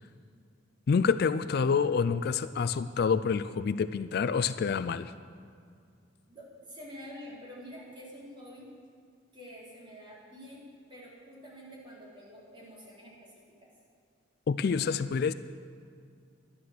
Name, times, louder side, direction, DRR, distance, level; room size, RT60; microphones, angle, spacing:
voice 1, 0.9-5.1 14.5-15.3, left 5 dB, 55° left, 13 dB, 0.3 m, -27 dB
voice 2, 6.3-8.7 9.3-10.6 10.9-13.3 13.6-13.7, equal, 25° right, -6 dB, 3.7 m, -47 dB
11.5 x 11.5 x 6.5 m, 2.2 s
head